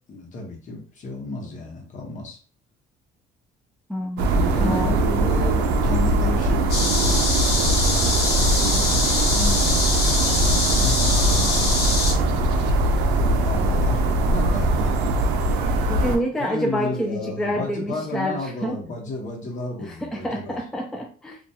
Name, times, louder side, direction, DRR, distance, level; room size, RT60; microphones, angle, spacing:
voice 1, 0.1-2.4 4.3-7.2 7.7-9.0 9.3-12.9 13.2-14.0 14.3-14.9 15.8-20.6, left 2 dB, 45° left, 0 dB, 0.9 m, -33 dB
voice 2, 3.9-5.0 15.9-18.8 19.8-21.4, equal, 5° left, 1 dB, 0.3 m, -28 dB
sound 1, 4.2-16.2, right 1 dB, 90° right, 0.4 m, -21 dB
sound 2, 6.7-12.1, left 2 dB, 90° left, 1.1 m, -24 dB
2.7 x 2.3 x 2.2 m, 0.42 s
cardioid pair, 110°, 17 cm